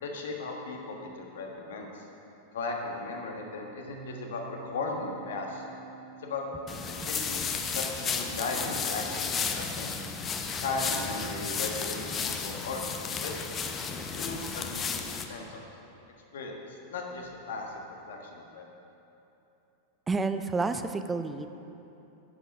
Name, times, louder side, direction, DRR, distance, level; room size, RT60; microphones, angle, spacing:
voice 1, 0.0-2.1 2.5-5.6 6.2-6.4 7.0-9.9 10.6-13.3 14.2-15.6 16.3-18.7, left 3 dB, 60° left, 1 dB, 1.4 m, -37 dB
sound 1, 3.9-10.1, right 6 dB, 70° right, 1.4 m, -50 dB
sound 2, 6.7-15.2, left 5 dB, 25° left, 0.7 m, -33 dB
voice 2, 20.1-21.5, right 3 dB, 15° right, 9 dB, 0.4 m, -30 dB
9.9 x 8.1 x 5.3 m, 2.9 s
figure-of-eight pair, 90°, 0 cm